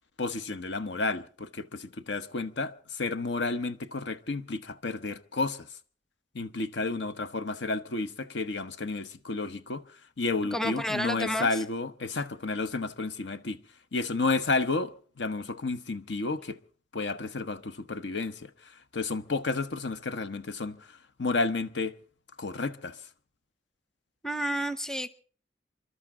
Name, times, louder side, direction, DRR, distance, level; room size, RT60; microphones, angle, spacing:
voice 1, 0.2-5.7 6.3-9.8 10.2-13.6 13.9-16.6 16.9-22.0 22.4-23.0, left 3 dB, 75° left, 0.9 m, -31 dB
voice 2, 10.5-11.5 24.2-25.1, equal, 5° left, 0.8 m, -30 dB
28.5 x 12.5 x 3.7 m
head